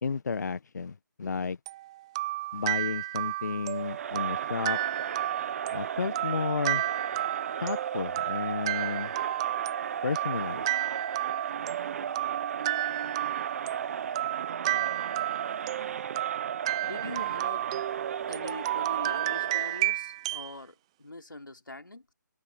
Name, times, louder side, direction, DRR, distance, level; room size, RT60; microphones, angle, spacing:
voice 1, 0.0-1.6 2.5-4.8 5.7-6.8 7.6-9.1 10.0-10.7, left 5 dB, 60° left, 1.3 m, -32 dB
sound 1, 1.7-20.5, right 16 dB, 15° right, 0.4 m, -32 dB
Crowd, 3.8-19.9, right 7 dB, 45° right, 1.1 m, -35 dB
voice 2, 16.8-17.7 18.2-22.1, left 2 dB, 90° left, 3.4 m, -42 dB
figure-of-eight pair, 150°, 11 cm